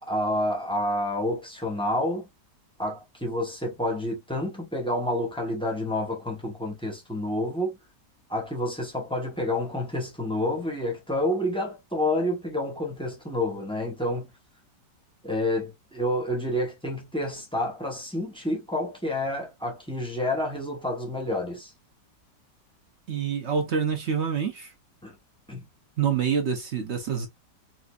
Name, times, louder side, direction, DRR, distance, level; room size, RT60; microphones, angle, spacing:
voice 1, 0.0-2.2 2.8-7.8 8.3-14.3 15.2-21.7 25.0-25.1 25.5-25.7, left 1 dB, 5° left, 0.6 m, -29 dB
voice 2, 23.1-24.7 26.0-27.3, right 7 dB, 60° right, 0.7 m, -26 dB
4.1 x 2.6 x 2.3 m
omnidirectional pair, 1.8 m